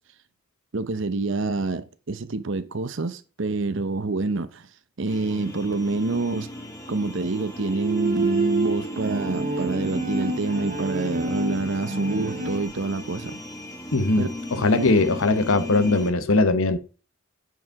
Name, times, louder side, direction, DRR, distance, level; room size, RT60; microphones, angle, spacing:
voice 1, 0.7-4.7 5.0-6.5 6.9-13.4 14.2-14.3, right 3 dB, 55° right, 0.7 m, -27 dB
sound 1, 5.1-16.1, equal, 15° left, 1.5 m, -36 dB
Bowed string instrument, 7.6-12.7, right 2 dB, 40° right, 1.0 m, -28 dB
voice 2, 13.9-16.8, left 3 dB, 65° left, 0.9 m, -20 dB
8.0 x 4.8 x 4.6 m
head